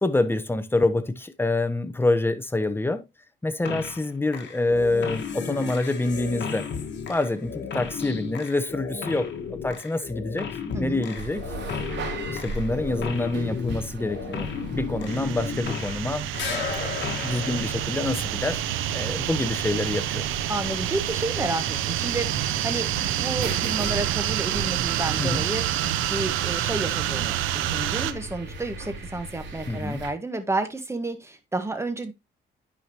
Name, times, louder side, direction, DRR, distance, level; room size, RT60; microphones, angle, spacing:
voice 1, 0.0-3.0 3.4-6.7 7.1-10.5 10.8-11.4 12.3-18.6 18.9-20.2 25.2-25.4 29.7-30.0, left 2 dB, 10° left, 1.0 m, -26 dB
sound 1, 3.6-4.1 4.3-16.1 16.3-18.5, left 6 dB, 65° left, 1.6 m, -34 dB
sound 2, 11.1-30.1, right 2 dB, 70° right, 3.3 m, -38 dB
sound 3, 15.1-28.1, right 13 dB, 90° right, 0.7 m, -28 dB
voice 2, 20.5-25.6 26.1-32.1, right 2 dB, 15° right, 1.5 m, -31 dB
10.0 x 5.0 x 2.9 m
cardioid pair, 90°, 20 cm